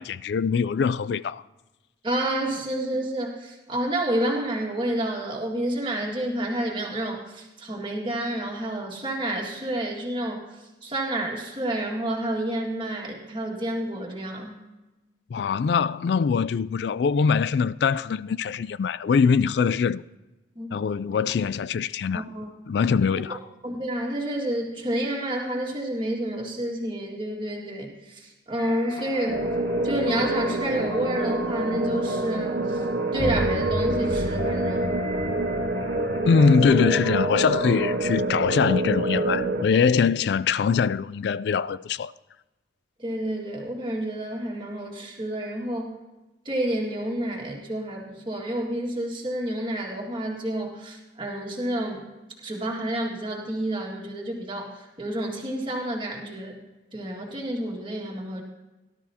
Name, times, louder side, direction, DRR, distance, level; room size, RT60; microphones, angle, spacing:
voice 1, 0.0-1.4 15.3-20.0 20.7-22.2 22.7-23.4 36.3-42.1, left 6 dB, 65° left, 0.3 m, -23 dB
voice 2, 2.0-10.5 10.8-14.6 20.6-20.7 22.1-22.5 23.6-29.4 29.8-32.8 33.1-35.0 43.0-46.0 46.5-52.0 52.4-56.6 56.9-58.4, right 1 dB, 25° right, 2.0 m, -29 dB
sound 1, 28.6-38.0, left 2 dB, 20° left, 1.7 m, -38 dB
sound 2, 29.3-39.6, right 2 dB, 55° right, 0.6 m, -27 dB
sound 3, 33.1-38.7, right 1 dB, 85° left, 2.1 m, -35 dB
18.0 x 12.5 x 2.8 m
head